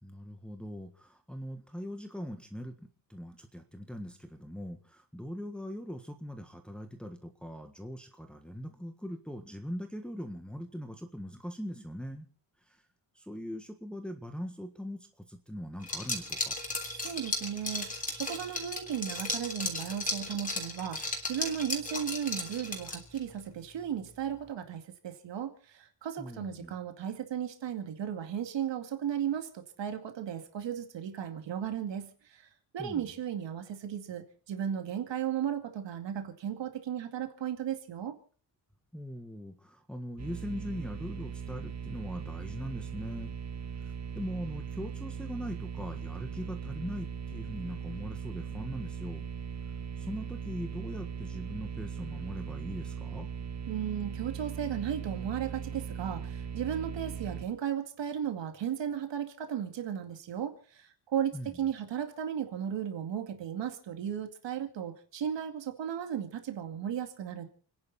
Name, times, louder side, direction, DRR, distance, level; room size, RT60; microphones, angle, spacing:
voice 1, 0.0-12.3 12.7-12.8 13.1-16.5 26.2-26.7 32.8-33.1 38.9-43.3 44.1-49.3 50.0-53.3 61.3-61.5, equal, ahead, 4 dB, 1.5 m, -41 dB
Liquid, 15.8-23.2, left 2 dB, 20° left, 3.2 m, -35 dB
voice 2, 16.9-32.4 32.7-38.2 53.7-67.5, right 9 dB, 75° right, 6 dB, 2.4 m, -35 dB
sound 1, 40.2-57.4, right 7 dB, 35° right, 1.6 m, -39 dB
30.0 x 11.0 x 4.2 m, 0.41 s
wide cardioid pair, 175°, 44 cm